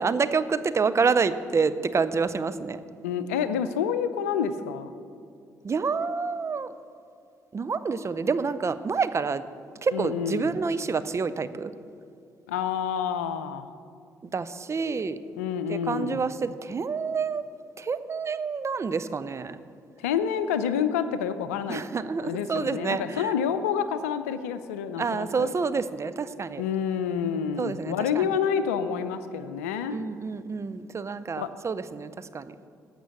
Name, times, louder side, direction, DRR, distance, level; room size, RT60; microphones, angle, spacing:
voice 1, 0.0-2.8 5.6-6.7 7.5-9.4 9.8-11.7 14.3-15.2 15.7-17.4 17.8-19.6 21.7-23.3 25.0-26.6 27.6-28.3 29.9-32.6, right 5 dB, 40° right, 12 dB, 0.6 m, -28 dB
voice 2, 3.0-4.9 9.9-10.6 12.5-13.7 15.4-16.3 20.0-21.8 22.2-25.5 26.6-30.0 31.4-31.5, left 7 dB, 90° left, 12 dB, 0.5 m, -28 dB
15.0 x 6.0 x 6.9 m, 2.4 s
hypercardioid pair, 50°, 8 cm